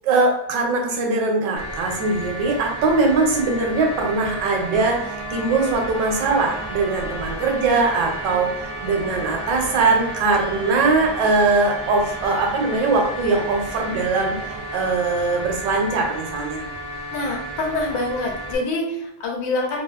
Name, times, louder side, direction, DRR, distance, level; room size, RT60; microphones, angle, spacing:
voice 1, 0.0-16.7, right 3 dB, 75° right, 1 dB, 1.2 m, -21 dB
sound 1, 1.6-18.6, right 1 dB, 55° right, 0.7 m, -33 dB
sound 2, 2.8-15.8, right 1 dB, 60° left, 1.1 m, -38 dB
voice 2, 17.1-19.8, left 2 dB, 75° left, 0 dB, 1.3 m, -26 dB
3.3 x 2.3 x 2.3 m, 0.81 s
omnidirectional pair, 2.0 m